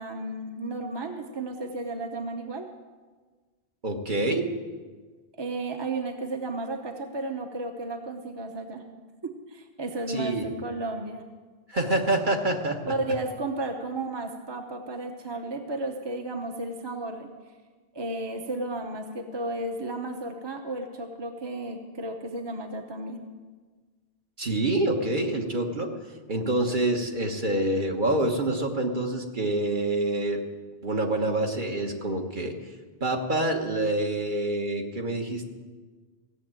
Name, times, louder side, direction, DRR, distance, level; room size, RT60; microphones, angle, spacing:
voice 1, 0.0-2.6 5.4-8.8 9.2-11.2 12.8-17.3 17.9-23.2, right 2 dB, 25° right, 4 dB, 0.9 m, -33 dB
voice 2, 3.8-4.5 10.1-10.4 11.7-12.9 24.4-25.9 26.3-30.4 30.8-32.5 33.0-35.5, right 2 dB, 50° right, 2 dB, 1.5 m, -26 dB
16.5 x 7.3 x 8.9 m, 1.4 s
omnidirectional pair, 1.1 m